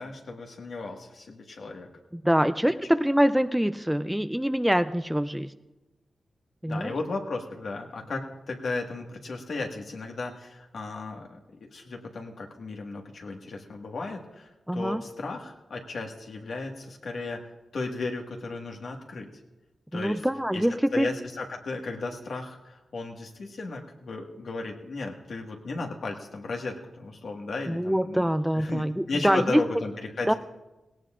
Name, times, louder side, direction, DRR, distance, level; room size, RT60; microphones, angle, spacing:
voice 1, 0.0-1.9 6.7-17.4 17.7-19.3 19.9-20.2 20.5-20.6 20.9-29.9 30.2-30.4, left 3 dB, 75° left, 1 dB, 1.7 m, -35 dB
voice 2, 2.1-5.5 6.6-6.9 14.7-15.0 19.9-21.1 27.7-29.6 30.3-30.4, equal, 5° right, 12 dB, 0.4 m, -24 dB
18.0 x 17.5 x 2.5 m, 1.0 s
cardioid pair, 75°, 0 cm